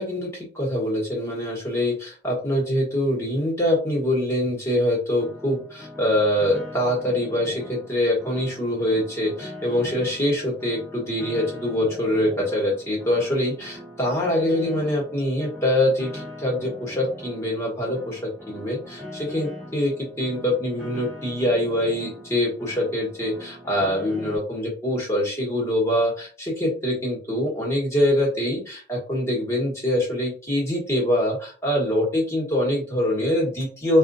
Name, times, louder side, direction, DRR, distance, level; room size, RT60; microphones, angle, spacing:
voice 1, 0.0-34.0, left 1 dB, 15° left, -3 dB, 1.5 m, -24 dB
Piano, 5.2-24.4, left 1 dB, 5° right, 1.3 m, -41 dB
4.2 x 2.5 x 2.7 m, 0.39 s
head